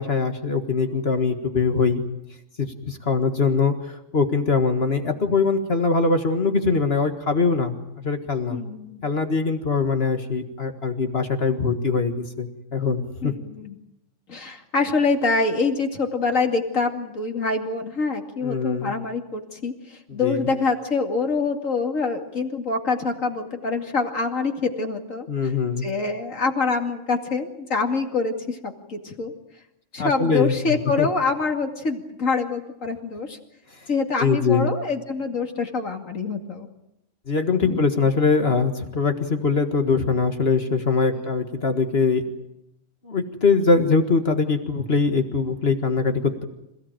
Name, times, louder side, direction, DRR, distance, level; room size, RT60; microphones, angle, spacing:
voice 1, 0.0-2.0 2.6-8.6 9.0-13.3 18.4-18.9 20.1-20.5 25.3-25.9 30.0-31.1 34.2-34.7 37.3-42.3 43.0-46.4, left 4 dB, 50° left, 6 dB, 1.9 m, -22 dB
voice 2, 8.5-9.0 13.2-13.8 14.3-25.5 25.8-29.3 29.9-33.4 33.9-36.7 37.6-37.8, left 4 dB, 85° left, 3 dB, 2.9 m, -25 dB
27.0 x 16.5 x 9.0 m, 0.87 s
omnidirectional pair, 1.3 m